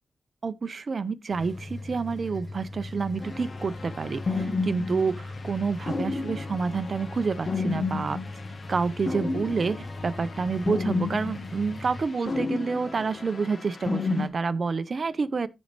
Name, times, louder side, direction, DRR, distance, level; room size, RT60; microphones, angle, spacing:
voice 1, 0.4-8.2 8.7-15.5, right 4 dB, 50° right, 0.7 m, -28 dB
sound 1, 1.3-12.0, left 2 dB, 30° left, 3.6 m, -39 dB
sound 2, 3.2-14.3, left 3 dB, 50° left, 1.3 m, -33 dB
15.0 x 5.3 x 3.0 m
wide cardioid pair, 90°, 0 cm